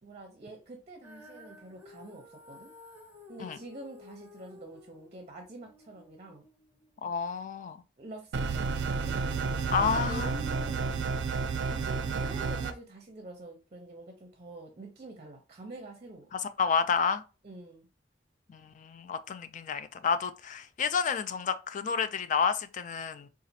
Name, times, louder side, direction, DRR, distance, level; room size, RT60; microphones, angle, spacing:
voice 1, 0.0-2.7 3.3-6.5 8.0-8.7 8.9-11.2 11.7-16.3 17.4-17.9, right 2 dB, 40° right, 0.6 m, -46 dB
Female singing, 1.0-7.2, left 3 dB, 10° right, 1.0 m, -54 dB
voice 2, 7.0-7.8 9.7-10.3 16.3-17.2 18.5-23.3, left 6 dB, 45° left, 0.3 m, -30 dB
sound 1, 8.3-12.7, right 4 dB, 90° right, 0.4 m, -31 dB
4.0 x 2.4 x 2.7 m
head